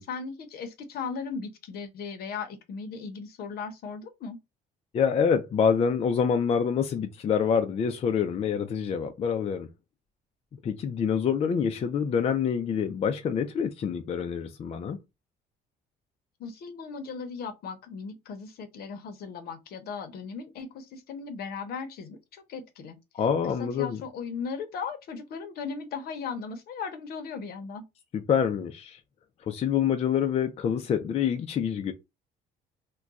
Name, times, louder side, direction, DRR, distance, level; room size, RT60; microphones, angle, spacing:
voice 1, 0.1-4.4 16.4-23.0 23.6-27.8, left 5 dB, 65° left, 0.8 m, -37 dB
voice 2, 4.9-9.7 10.6-15.0 23.1-24.0 28.1-29.0 29.5-31.9, left 7 dB, 40° left, 0.4 m, -26 dB
2.3 x 2.2 x 3.9 m
cardioid pair, 110°, 17 cm